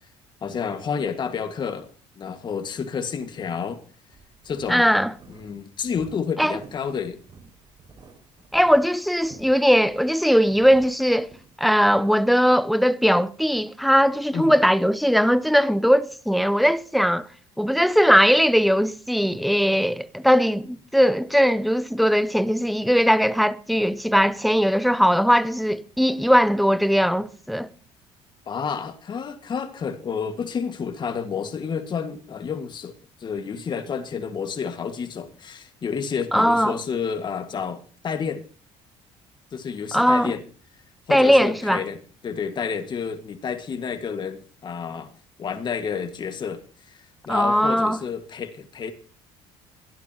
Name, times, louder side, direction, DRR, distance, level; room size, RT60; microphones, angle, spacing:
voice 1, 0.4-1.9 2.2-3.8 4.4-4.9 5.3-7.2 14.3-14.5 28.5-32.9 33.2-38.4 39.5-40.4 41.1-42.0 42.2-45.1 45.4-48.9, left 6 dB, 40° left, 1.7 m, -30 dB
sound 1, 4.1-11.7, right 4 dB, 35° right, 5.3 m, -50 dB
voice 2, 4.7-5.1 6.4-6.5 8.5-11.3 11.6-17.3 17.6-27.7 36.3-36.8 39.9-40.3 41.1-41.8 47.3-48.0, equal, ahead, 0.8 m, -19 dB
22.5 x 12.5 x 2.9 m
cardioid pair, 110°, 12 cm